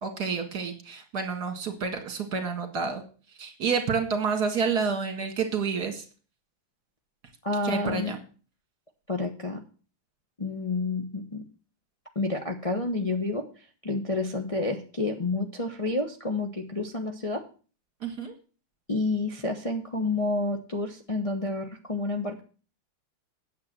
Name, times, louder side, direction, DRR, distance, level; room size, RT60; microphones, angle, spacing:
voice 1, 0.0-3.0 3.4-6.0 7.6-8.2 18.0-18.3, right 5 dB, 50° right, 5 dB, 2.4 m, -29 dB
voice 2, 7.4-8.2 9.1-9.6 10.4-11.4 12.1-13.5 13.8-17.4 18.9-22.4, left 2 dB, 25° left, 2 dB, 0.9 m, -29 dB
9.3 x 7.8 x 7.4 m, 0.38 s
omnidirectional pair, 2.2 m